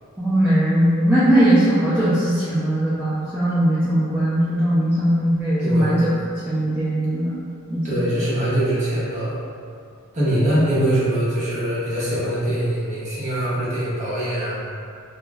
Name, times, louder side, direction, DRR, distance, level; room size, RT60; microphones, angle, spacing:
voice 1, 0.2-6.1 6.5-7.3 7.7-8.0, right 1 dB, 5° right, -13 dB, 0.4 m, -19 dB
voice 2, 5.6-6.0 7.8-9.4 10.1-14.6, right 1 dB, 30° right, -9 dB, 0.8 m, -23 dB
2.2 x 2.0 x 3.4 m, 2.3 s
head